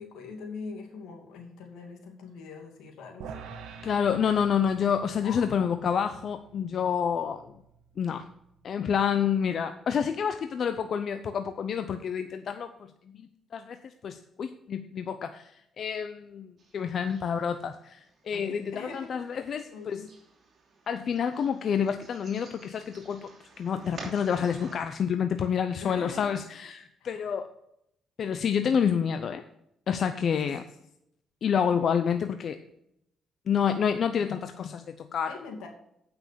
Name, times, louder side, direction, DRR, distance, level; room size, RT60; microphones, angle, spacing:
voice 1, 0.0-3.3 4.2-4.4 5.2-5.7 16.8-17.1 18.3-19.1 19.7-20.1 25.8-26.3 27.0-27.4 30.4-30.7 35.3-35.7, left 4 dB, 85° left, 2 dB, 2.4 m, -43 dB
sound 1, 3.2-9.6, right 6 dB, 85° right, 1.2 m, -48 dB
voice 2, 3.8-7.4 8.0-8.3 8.6-12.7 13.1-13.8 14.0-20.0 20.9-23.3 23.6-27.5 28.2-29.4 29.9-30.6 31.4-32.6 33.5-35.3, left 7 dB, 55° left, 9 dB, 0.6 m, -28 dB
sound 2, 16.6-24.8, right 4 dB, 50° right, 2.9 m, -51 dB
8.5 x 6.1 x 6.8 m, 0.77 s
cardioid pair, 90°, 0 cm